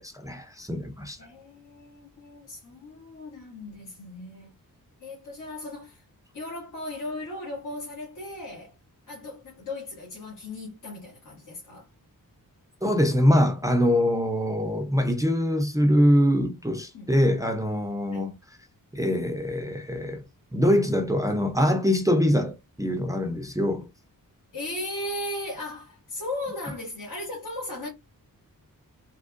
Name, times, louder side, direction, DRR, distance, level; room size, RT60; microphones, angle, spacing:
voice 1, 0.0-1.2 12.8-18.4 18.9-20.2 20.5-23.9, equal, 10° right, 0.5 m, -23 dB
voice 2, 1.2-4.5 5.0-6.0 6.3-8.7 9.1-11.9 16.9-17.3 18.0-18.4 24.5-27.9, left 1 dB, 65° left, 1.9 m, -37 dB
3.5 x 2.9 x 2.4 m
wide cardioid pair, 140°, 35 cm